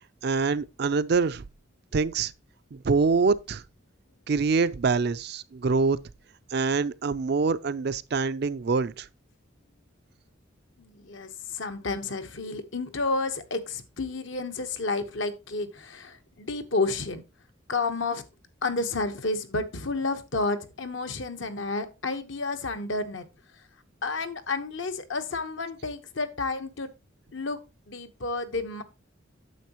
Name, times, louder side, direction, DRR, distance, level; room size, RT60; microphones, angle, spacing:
voice 1, 0.2-1.4 1.9-2.3 2.7-3.6 4.3-6.0 6.5-9.1, right 4 dB, 50° right, 0.4 m, -25 dB
voice 2, 10.8-17.2 17.7-18.2 18.6-23.3 24.0-26.9 27.3-27.6 27.9-28.8, left 3 dB, 65° left, 1.1 m, -31 dB
9.4 x 7.2 x 2.9 m
head